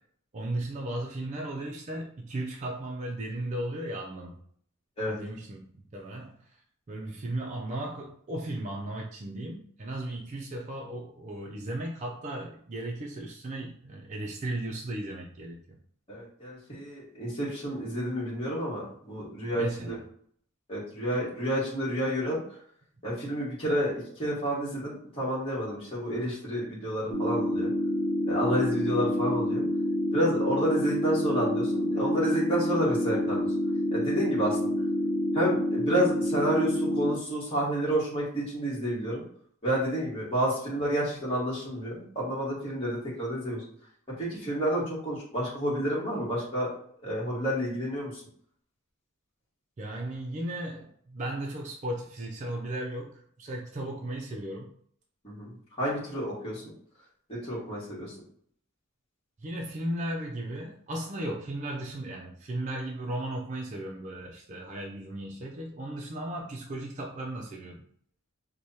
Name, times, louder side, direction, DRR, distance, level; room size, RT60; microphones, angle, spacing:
voice 1, 0.3-4.4 5.1-5.7 5.9-6.6 6.9-15.8 19.5-20.0 49.8-54.7 59.4-67.8, right 1 dB, 35° right, -1 dB, 0.4 m, -36 dB
voice 2, 16.1-19.9 20.7-22.4 23.0-27.7 28.3-29.6 30.1-33.5 33.9-34.7 35.3-39.2 39.6-43.6 44.2-46.7 47.0-48.1 55.2-56.6 57.3-58.1, equal, 25° left, -7 dB, 1.5 m, -30 dB
sound 1, 27.1-37.1, equal, 10° left, 0.8 m, -28 dB
4.6 x 2.2 x 2.7 m, 0.62 s
head